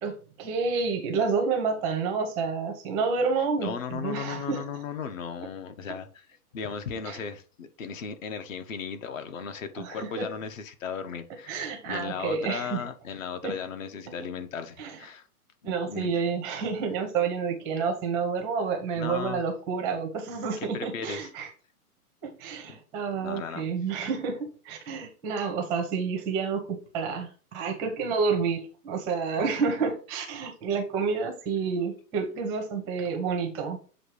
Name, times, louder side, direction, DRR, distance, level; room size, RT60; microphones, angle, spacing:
voice 1, 0.0-4.6 7.1-7.2 9.8-10.3 11.5-12.8 13.4-13.5 14.1-14.2 14.8-15.0 15.6-21.5 22.2-33.8, right 5 dB, 5° right, 4 dB, 0.6 m, -29 dB
voice 2, 3.6-6.3 6.5-15.3 15.6-16.1 18.9-19.4 20.6-21.3 22.7-22.8 23.2-23.7, left 6 dB, 55° left, 9 dB, 1.2 m, -36 dB
7.6 x 2.7 x 4.8 m, 0.38 s
hypercardioid pair, 155°, 46 cm